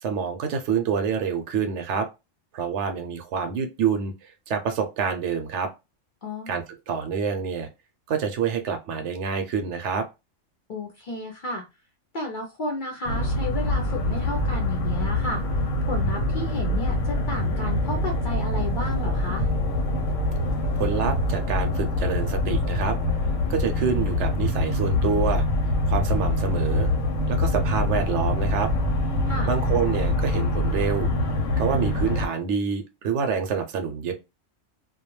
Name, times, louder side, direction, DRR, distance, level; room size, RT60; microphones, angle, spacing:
voice 1, 0.0-2.1 2.5-5.7 6.5-7.7 8.1-10.1 20.8-23.0 23.5-25.4 25.9-26.9 27.3-28.7 29.5-31.1 31.6-34.1, right 6 dB, 70° right, 0.8 m, -27 dB
voice 2, 6.2-6.6 10.7-11.6 12.1-15.4 15.9-19.5 29.3-29.5, left 2 dB, 55° left, 0.6 m, -32 dB
sound 1, 13.0-32.3, left 1 dB, 90° left, 1.0 m, -25 dB
2.3 x 2.2 x 3.0 m
omnidirectional pair, 1.3 m